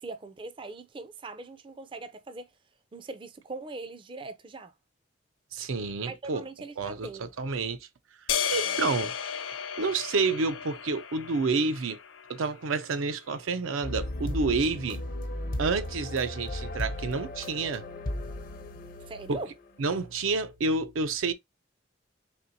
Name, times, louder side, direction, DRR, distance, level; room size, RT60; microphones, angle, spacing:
voice 1, 0.0-2.5 2.9-4.7 6.0-7.3 8.6-8.8 19.1-19.5, right 3 dB, 25° right, 0.4 m, -41 dB
voice 2, 5.5-6.4 6.8-7.8 8.5-9.1 9.8-12.0 12.3-15.0 15.6-17.9 19.3-19.4 19.8-21.3, right 4 dB, 85° right, 0.5 m, -29 dB
sound 1, 8.3-12.6, left 8 dB, 90° left, 0.7 m, -34 dB
sound 2, 13.8-19.9, left 1 dB, 45° left, 0.6 m, -35 dB
4.2 x 3.4 x 2.6 m
head